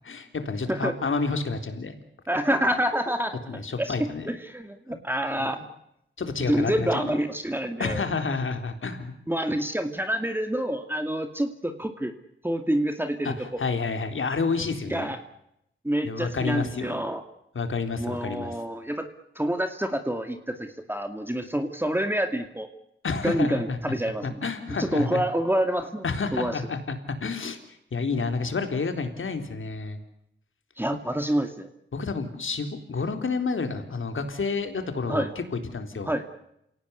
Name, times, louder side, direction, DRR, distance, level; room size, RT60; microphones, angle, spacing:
voice 1, 0.0-1.9 3.5-4.3 6.2-7.2 7.8-9.1 13.2-15.1 16.0-17.0 17.5-18.5 23.0-23.8 24.2-25.2 26.0-27.6 27.9-30.0 31.9-36.1, left 4 dB, 70° left, 7 dB, 3.9 m, -29 dB
voice 2, 2.3-3.9 4.3-5.6 6.4-8.0 9.3-12.1 12.4-13.6 14.9-15.2 15.8-17.2 18.0-19.1 19.4-22.7 23.2-24.4 24.8-26.1 26.3-26.6 30.8-31.7 35.1-35.3 36.0-36.2, right 1 dB, 10° right, 7 dB, 2.4 m, -27 dB
28.0 x 18.0 x 8.3 m, 0.79 s
cardioid pair, 60°, 21 cm